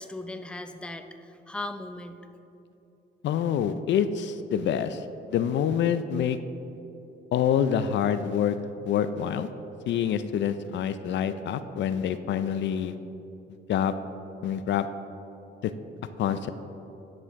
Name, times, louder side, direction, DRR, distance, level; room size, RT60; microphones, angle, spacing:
voice 1, 0.0-2.3, left 2 dB, 5° left, 8 dB, 0.4 m, -38 dB
voice 2, 3.2-5.1 5.3-6.4 7.3-8.6 8.9-9.5 9.9-12.9 13.7-13.9 14.4-14.9 15.6-15.7 16.2-16.5, left 9 dB, 65° left, 12 dB, 0.4 m, -26 dB
9.9 x 6.5 x 3.6 m, 2.9 s
cardioid pair, 90°, 20 cm